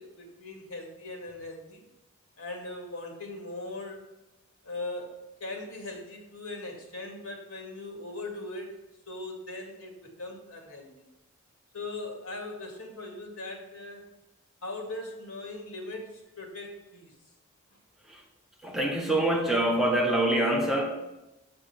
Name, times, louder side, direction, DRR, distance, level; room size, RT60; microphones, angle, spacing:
voice 1, 0.0-1.9 2.4-4.1 4.6-11.1 11.7-14.0 14.6-17.1, left 2 dB, 90° left, 2 dB, 2.3 m, -40 dB
voice 2, 18.6-21.0, right 1 dB, ahead, 0 dB, 1.2 m, -25 dB
7.2 x 6.9 x 5.8 m, 0.99 s
head